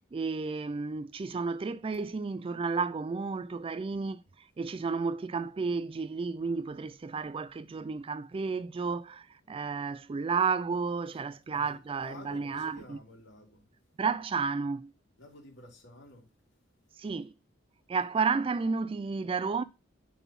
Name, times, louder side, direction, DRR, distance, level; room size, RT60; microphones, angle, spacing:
voice 1, 0.1-4.2 4.6-13.0 14.0-14.9 17.0-17.3 17.9-19.6, right 4 dB, 30° right, 0.3 m, -32 dB
voice 2, 11.5-13.6 15.2-16.3, left 1 dB, 65° left, 2.8 m, -51 dB
6.8 x 4.2 x 5.8 m
head